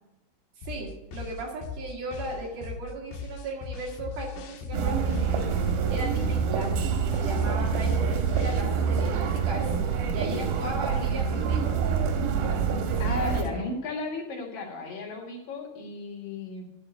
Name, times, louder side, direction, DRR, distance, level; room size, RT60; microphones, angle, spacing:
sound 1, 0.6-8.6, left 5 dB, 85° left, 2.8 m, -39 dB
voice 1, 0.6-6.7 7.1-9.7 10.1-11.9 12.7-13.6, right 2 dB, 60° right, -2 dB, 3.5 m, -37 dB
sound 2, 4.7-13.4, right 6 dB, 90° right, 3.1 m, -26 dB
voice 2, 13.0-16.6, left 3 dB, 65° left, -1 dB, 3.3 m, -34 dB
11.0 x 5.2 x 8.6 m, 0.93 s
omnidirectional pair, 4.5 m